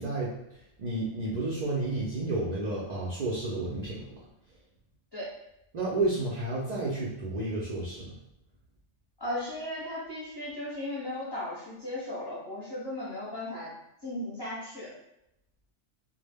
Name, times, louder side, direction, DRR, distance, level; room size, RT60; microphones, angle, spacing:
voice 1, 0.0-4.1 5.7-8.1, right 2 dB, 60° right, -5 dB, 0.4 m, -31 dB
voice 2, 9.2-13.7 14.0-14.9, left 1 dB, 25° left, -7 dB, 0.6 m, -36 dB
2.0 x 2.0 x 3.3 m, 0.83 s
omnidirectional pair, 1.2 m